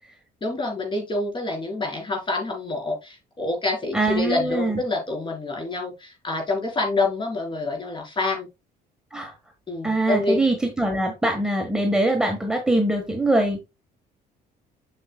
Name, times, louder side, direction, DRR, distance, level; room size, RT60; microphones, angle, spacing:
voice 1, 0.4-8.5 9.7-10.4, left 2 dB, 30° left, 0 dB, 4.4 m, -27 dB
voice 2, 3.9-4.8 9.1-9.3 9.8-13.6, right 1 dB, 5° right, 2 dB, 1.5 m, -23 dB
7.9 x 6.5 x 2.3 m, 0.24 s
cardioid pair, 110°, 17 cm